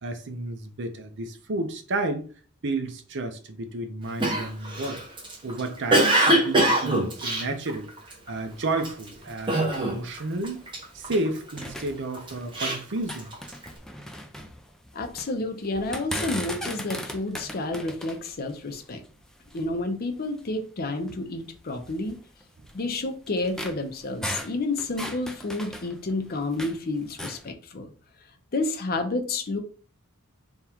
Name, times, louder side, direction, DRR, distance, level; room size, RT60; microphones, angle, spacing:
voice 1, 0.0-2.3 2.6-5.0 5.4-10.6 10.9-13.3, right 2 dB, 55° right, 0.7 m, -31 dB
Cough, 4.2-8.3 8.8-9.1 9.5-10.2 10.4-11.6 12.1-13.6, right 1 dB, 25° right, 0.9 m, -23 dB
sound 1, 8.4-11.3 11.6-12.6 12.9-15.3 15.7-19.8 20.4-20.5 21.0-21.1 21.9-26.8 27.1-27.5, equal, 5° left, 0.4 m, -38 dB
voice 2, 14.9-19.0 19.5-22.2 22.7-27.9 28.5-29.6, left 2 dB, 45° left, 0.7 m, -30 dB
3.6 x 2.4 x 4.3 m
head